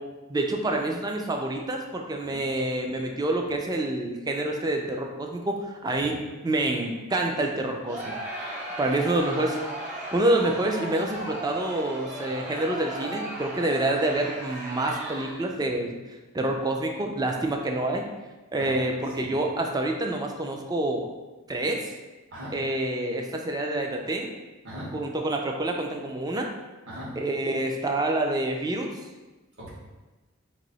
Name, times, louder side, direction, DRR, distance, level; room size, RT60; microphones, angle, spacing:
voice 1, 0.3-6.2 6.4-8.1 8.8-9.6 10.1-16.0 16.3-18.1 18.5-21.1 21.5-21.9 22.5-24.3 24.9-26.5 27.2-28.9, right 1 dB, 20° right, 2 dB, 0.4 m, -27 dB
Crowd, 7.9-15.6, right 1 dB, 40° right, 1.0 m, -36 dB
voice 2, 24.6-24.9 26.9-27.1 29.6-29.7, equal, 60° right, -7 dB, 1.5 m, -38 dB
3.0 x 2.6 x 4.0 m, 1.2 s
head